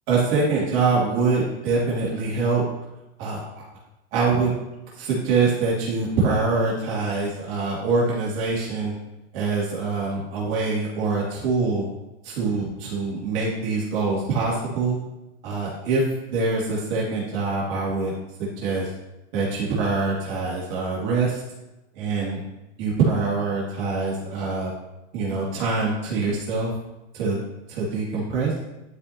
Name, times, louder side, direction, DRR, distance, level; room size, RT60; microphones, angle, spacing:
voice 1, 0.1-2.6 3.2-3.6 4.1-4.5 5.0-8.9 9.3-11.9 12.2-15.0 15.4-16.0 16.3-18.1 18.4-18.9 19.3-21.4 21.9-22.4 22.8-24.7 25.1-26.7 27.1-27.4 27.7-28.5, right 4 dB, 45° right, -5 dB, 2.7 m, -24 dB
11.5 x 5.0 x 2.9 m, 0.96 s
supercardioid pair, 155°, 37 cm